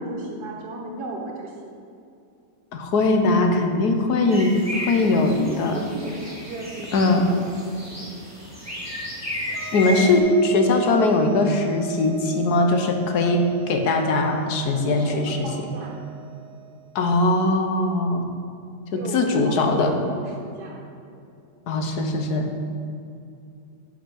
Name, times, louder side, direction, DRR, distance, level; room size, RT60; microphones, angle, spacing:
voice 1, 0.0-1.8 5.1-8.1 14.7-16.0 18.9-20.8, right 2 dB, 80° right, -2 dB, 1.6 m, -35 dB
voice 2, 2.7-4.5 4.9-5.7 6.9-7.2 9.7-15.5 16.9-18.2 18.9-19.9 21.7-22.5, left 2 dB, 80° left, 4 dB, 1.5 m, -20 dB
sound 1, 4.3-10.2, equal, 10° right, 2.2 m, -34 dB
sound 2, 9.5-17.0, right 15 dB, 45° right, 0.7 m, -37 dB
10.0 x 5.8 x 6.0 m, 2.5 s
omnidirectional pair, 1.7 m